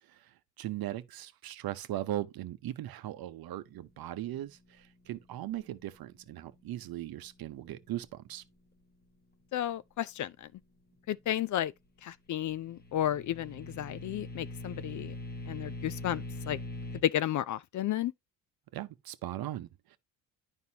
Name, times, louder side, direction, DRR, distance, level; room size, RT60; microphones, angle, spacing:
voice 1, 0.0-8.4 18.7-20.0, right 13 dB, 60° right, 0.8 m, -39 dB
voice 2, 9.5-10.5 11.1-11.7 12.0-15.1 15.5-16.6 17.0-18.1, left 12 dB, 45° left, 0.5 m, -33 dB
sound 1, 12.5-17.0, left 2 dB, 25° left, 1.1 m, -42 dB
9.4 x 5.3 x 2.8 m
cardioid pair, 95°, 42 cm